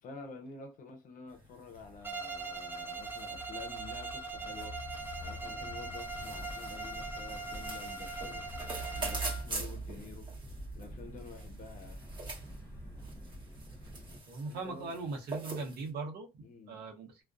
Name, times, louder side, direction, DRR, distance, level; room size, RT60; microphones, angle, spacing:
voice 1, 0.0-4.8 5.2-8.5 8.9-10.3 10.7-12.0 14.5-14.9 16.4-16.8, left 4 dB, 55° left, 0.6 m, -49 dB
sound 1, 1.3-15.9, right 3 dB, 30° right, 1.1 m, -46 dB
sound 2, 1.7-14.2, right 2 dB, 15° left, 0.7 m, -45 dB
Bowed string instrument, 2.0-9.5, right 3 dB, 15° right, 0.3 m, -41 dB
voice 2, 14.3-17.2, right 3 dB, 70° right, 0.8 m, -40 dB
2.3 x 2.2 x 2.4 m
cardioid pair, 110°, 17 cm